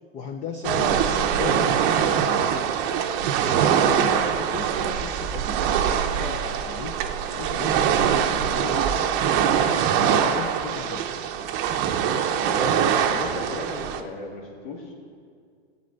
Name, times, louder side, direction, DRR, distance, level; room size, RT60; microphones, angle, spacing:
voice 1, 0.1-2.4 3.4-7.0 7.3-9.5 9.9-11.1, left 6 dB, 20° left, 5 dB, 0.4 m, -36 dB
sound 1, 0.6-14.0, right 8 dB, 35° right, 0.7 m, -23 dB
voice 2, 12.4-14.9, left 1 dB, 60° left, -2 dB, 2.2 m, -34 dB
16.5 x 8.2 x 3.9 m, 2.1 s
hypercardioid pair, 135°, 34 cm